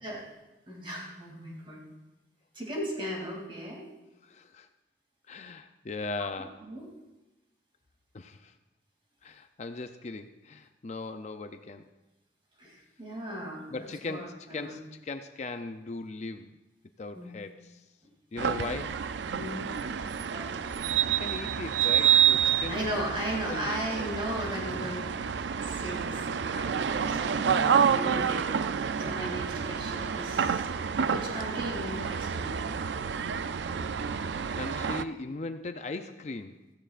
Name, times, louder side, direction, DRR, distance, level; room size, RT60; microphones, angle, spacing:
voice 1, 0.7-1.8 2.5-3.9 6.7-6.9 12.6-14.7 17.1-17.3 19.3-19.7 20.2-20.6 22.7-25.1 25.6-27.4 27.8-28.6 29.0-30.7 31.0-32.6, equal, 30° right, -2 dB, 2.8 m, -37 dB
voice 2, 4.2-4.7 5.3-6.6 8.1-8.5 9.2-11.9 13.7-16.5 17.0-17.8 18.3-19.0 21.1-22.8 23.5-24.1 26.2-27.3 31.1-31.3 34.0-36.6, left 3 dB, 40° left, 8 dB, 0.5 m, -39 dB
sound 1, 18.4-35.0, right 7 dB, 80° right, 0.4 m, -28 dB
15.5 x 15.0 x 2.5 m, 1.1 s
head